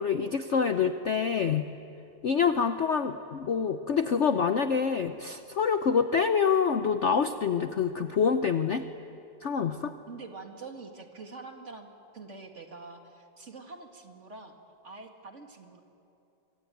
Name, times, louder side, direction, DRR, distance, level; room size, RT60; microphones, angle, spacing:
voice 1, 0.0-1.7 2.2-8.9 9.4-10.0, left 6 dB, 55° left, 8 dB, 0.9 m, -26 dB
voice 2, 10.1-11.9 12.1-14.5 14.8-15.8, right 3 dB, 40° right, 4 dB, 2.5 m, -45 dB
25.5 x 24.5 x 9.3 m, 2.8 s
omnidirectional pair, 2.0 m